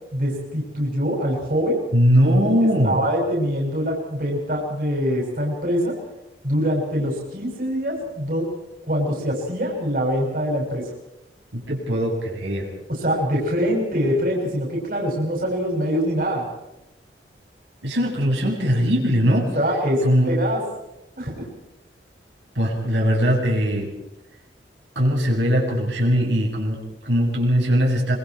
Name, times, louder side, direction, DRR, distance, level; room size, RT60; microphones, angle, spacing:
voice 1, 0.1-1.8 2.8-5.9 6.4-8.5 8.8-10.9 12.9-16.4 19.5-20.6 21.2-21.4, equal, 50° right, -1 dB, 6.5 m, -24 dB
voice 2, 1.9-3.0 11.5-12.7 17.8-19.5 20.0-20.3 22.5-23.9 24.9-28.2, equal, 85° right, -2 dB, 7.9 m, -20 dB
26.5 x 24.5 x 4.8 m, 0.90 s
head